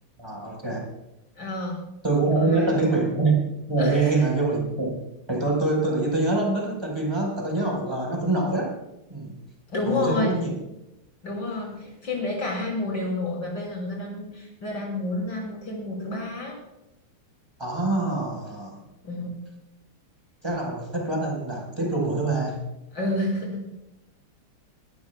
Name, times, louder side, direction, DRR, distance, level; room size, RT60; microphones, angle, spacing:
voice 1, 0.2-0.8 2.0-3.4 3.7-5.0 5.3-8.7 9.1-9.4 9.9-10.6 17.6-18.8 20.4-22.6, right 2 dB, 10° right, 0 dB, 4.8 m, -25 dB
voice 2, 1.4-1.8 2.3-3.1 3.8-4.3 9.7-10.4 11.2-16.6 19.0-19.3 22.9-23.6, left 2 dB, 55° left, -1 dB, 6.2 m, -29 dB
23.0 x 15.0 x 2.4 m, 0.92 s
omnidirectional pair, 2.4 m